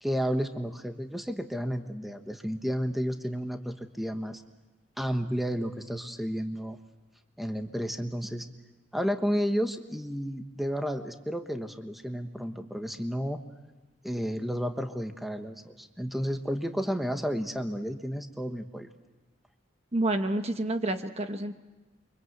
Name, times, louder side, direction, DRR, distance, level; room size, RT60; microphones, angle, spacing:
voice 1, 0.0-4.4 5.0-6.8 7.4-8.5 8.9-13.4 14.0-18.9, equal, ahead, 6 dB, 1.3 m, -32 dB
voice 2, 19.9-21.5, right 1 dB, 35° right, 7 dB, 1.3 m, -28 dB
29.5 x 24.5 x 8.1 m, 1.1 s
head